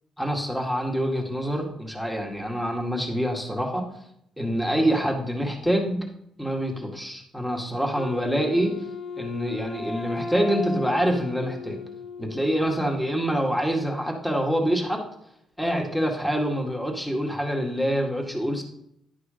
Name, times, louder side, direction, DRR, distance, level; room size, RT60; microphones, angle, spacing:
voice 1, 0.2-3.8 4.4-6.0 6.4-8.7 9.2-11.8 12.2-15.0 15.6-18.6, equal, 5° left, 1 dB, 2.0 m, -26 dB
Wind instrument woodwind instrument, 7.9-12.9, left 4 dB, 35° left, 0.9 m, -36 dB
11.0 x 4.8 x 5.1 m, 0.76 s
cardioid pair, 90°, 0 cm